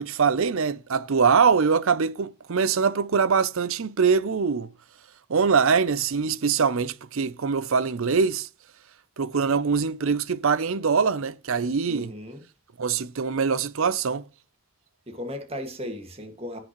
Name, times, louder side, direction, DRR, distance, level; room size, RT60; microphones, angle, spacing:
voice 1, 0.0-4.7 5.3-8.5 9.2-12.1 12.8-14.2, right 5 dB, 65° right, 0.6 m, -23 dB
voice 2, 11.9-12.5 15.1-16.6, left 1 dB, 25° right, 1.9 m, -36 dB
17.0 x 6.0 x 3.1 m
head